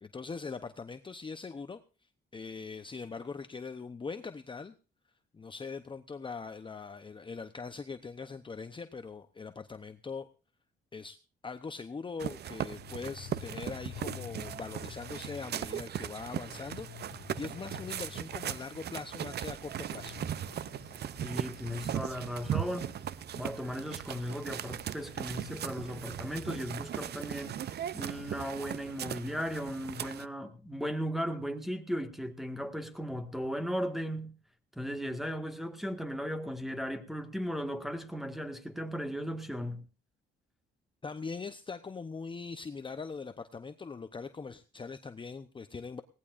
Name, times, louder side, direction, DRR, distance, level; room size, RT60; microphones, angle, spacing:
voice 1, 0.0-1.8 2.3-4.7 5.3-10.3 10.9-11.2 11.4-20.2 41.0-46.0, left 4 dB, 25° left, 0.8 m, -41 dB
sound 1, 12.2-30.3, right 10 dB, 55° right, 0.6 m, -38 dB
sound 2, 12.7-19.2 19.5-19.6 19.9-24.5 25.0-26.6, left 13 dB, 60° left, 0.8 m, -50 dB
Wind, 19.3-28.5, right 2 dB, 30° right, 3.2 m, -58 dB
voice 2, 21.2-22.9 23.4-34.3 34.8-39.8, equal, ahead, 1.8 m, -36 dB
20.0 x 17.5 x 2.6 m
cardioid pair, 90°, 20 cm